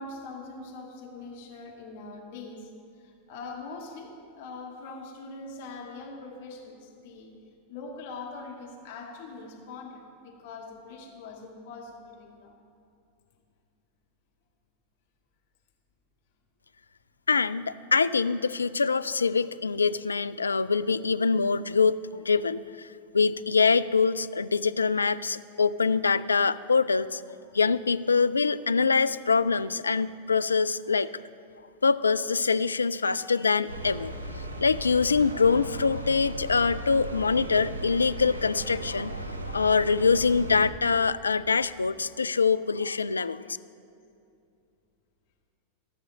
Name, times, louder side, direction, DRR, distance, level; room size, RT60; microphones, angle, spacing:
voice 1, 0.0-2.7 2.9-7.3 7.7-12.6 38.2-38.4, left 3 dB, 50° left, -1 dB, 1.8 m, -42 dB
voice 2, 17.3-22.0 22.3-22.6 23.1-27.2 27.5-31.1 31.8-34.1 34.6-43.4, left 5 dB, 75° left, 13 dB, 0.3 m, -24 dB
sound 1, 33.7-40.7, right 2 dB, 75° right, 1.1 m, -37 dB
15.0 x 6.2 x 7.6 m, 2.5 s
figure-of-eight pair, 90°, 0 cm